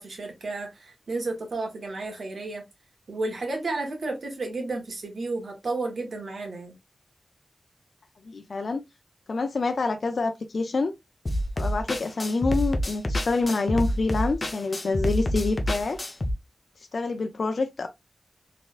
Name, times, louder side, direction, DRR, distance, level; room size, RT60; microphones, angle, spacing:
voice 1, 0.0-2.6 3.1-6.7, right 2 dB, 80° right, 1.4 m, -32 dB
voice 2, 8.2-8.8 9.3-10.9 11.6-16.0 16.8-17.9, left 3 dB, 70° left, 0.5 m, -27 dB
sound 1, 11.3-16.3, equal, 35° left, 0.8 m, -28 dB
4.2 x 3.6 x 2.5 m
wide cardioid pair, 100°, 0 cm